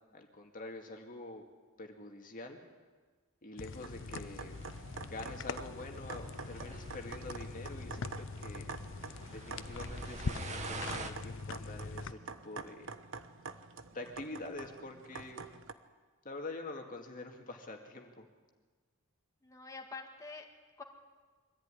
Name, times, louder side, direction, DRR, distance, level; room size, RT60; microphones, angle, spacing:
voice 1, 0.1-1.4 1.8-2.6 3.4-4.6 5.0-8.7 9.3-12.9 13.9-15.4 16.2-18.3, left 2 dB, 40° left, 3 dB, 2.1 m, -46 dB
sound 1, 3.6-12.1, left 4 dB, 60° left, 0.7 m, -43 dB
sound 2, 3.8-15.7, right 4 dB, 65° right, 1.1 m, -48 dB
sound 3, 4.5-11.1, right 3 dB, 35° right, 1.6 m, -47 dB
voice 2, 14.3-14.7 15.3-15.6 19.4-20.5 20.8-20.9, left 4 dB, 15° left, 1 dB, 2.1 m, -48 dB
23.5 x 14.5 x 9.9 m, 1.4 s
head